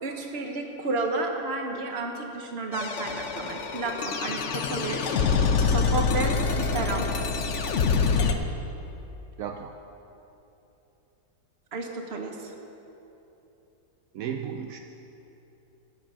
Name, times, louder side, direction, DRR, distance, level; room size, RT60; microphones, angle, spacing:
voice 1, 0.0-5.0 5.3-7.1 11.7-12.5, right 3 dB, 40° right, 3 dB, 1.2 m, -32 dB
sound 1, 2.7-8.3, left 5 dB, 65° left, 0.7 m, -26 dB
voice 2, 9.4-9.7 14.1-14.8, right 8 dB, 75° right, 4 dB, 0.8 m, -34 dB
13.5 x 7.8 x 6.2 m, 3.0 s
omnidirectional pair, 2.0 m